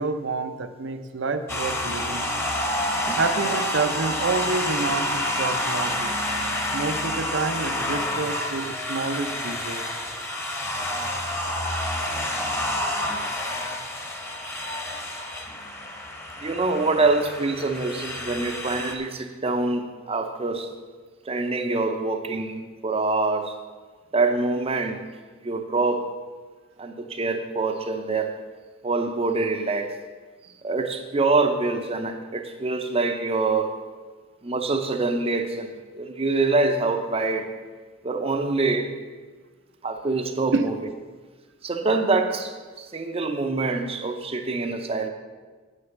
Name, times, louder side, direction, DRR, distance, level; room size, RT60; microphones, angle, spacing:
voice 1, 0.0-2.3 3.2-6.2 6.7-9.8 40.5-40.6, right 3 dB, 65° right, 9 dB, 0.7 m, -28 dB
sound 1, 1.5-18.9, left 1 dB, 15° left, 1.1 m, -29 dB
voice 2, 16.4-20.7 21.3-23.6 24.1-25.1 25.4-26.1 26.8-28.3 28.8-30.0 30.6-33.7 34.4-37.5 38.0-39.0 39.8-40.7 41.6-45.1, right 3 dB, 30° right, 6 dB, 0.7 m, -25 dB
8.4 x 6.6 x 7.1 m, 1.4 s
head